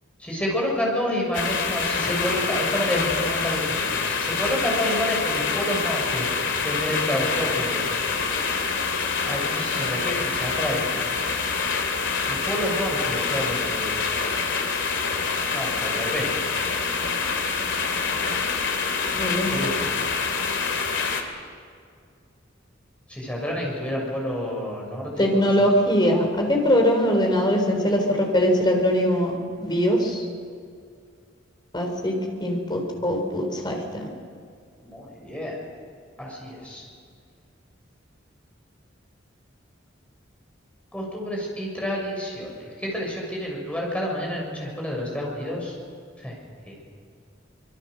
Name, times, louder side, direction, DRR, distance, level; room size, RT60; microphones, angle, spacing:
voice 1, 0.2-7.9 9.2-10.8 12.3-14.3 15.5-16.3 19.2-19.7 23.1-25.7 34.8-35.6 36.2-36.9 40.9-45.7 46.2-46.3 46.7-46.8, equal, 5° left, -2 dB, 6.5 m, -29 dB
sound 1, 1.3-21.2, left 5 dB, 70° left, 2.7 m, -26 dB
voice 2, 19.1-19.5 25.2-29.3 29.6-30.3 31.7-32.1 32.4-33.8, equal, 25° left, 2 dB, 4.1 m, -21 dB
25.5 x 22.0 x 6.6 m, 2.2 s
head